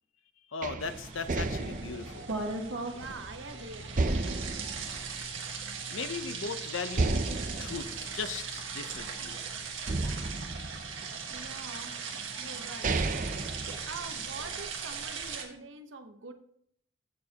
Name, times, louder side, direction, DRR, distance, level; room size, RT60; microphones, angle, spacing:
voice 1, 0.5-2.3 5.9-7.3 7.6-9.4, left 5 dB, 90° left, 10 dB, 0.8 m, -38 dB
sound 1, 0.6-3.4 4.0-5.9 6.2-6.3 6.9-9.3 9.9-11.5 12.2-12.3 12.6-14.5, right 2 dB, 40° right, 0.6 m, -33 dB
sound 2, 0.8-15.4, right 5 dB, 90° right, 1.6 m, -39 dB
voice 2, 2.9-4.2 11.3-12.0 12.4-13.2 13.9-16.3, right 3 dB, 75° right, 7 dB, 1.0 m, -45 dB
14.5 x 6.5 x 2.9 m, 0.69 s
head